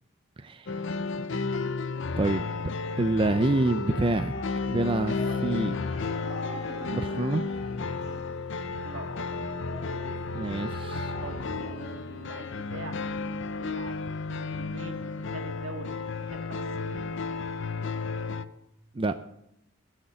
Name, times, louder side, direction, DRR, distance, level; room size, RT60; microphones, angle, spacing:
voice 1, 0.4-0.7 2.2-2.4 3.0-4.3 4.7-5.7 6.9-7.4 10.3-11.1 18.9-19.1, right 2 dB, 25° right, 9 dB, 0.4 m, -27 dB
sound 1, 0.7-18.4, left 4 dB, 60° left, 0.7 m, -33 dB
sound 2, 4.3-11.9, left 1 dB, 30° left, 3.5 m, -42 dB
voice 2, 8.8-9.3 11.2-13.0 13.6-14.0 14.3-17.1, right 2 dB, 70° right, 5 dB, 1.8 m, -43 dB
16.5 x 6.6 x 7.7 m, 0.80 s
head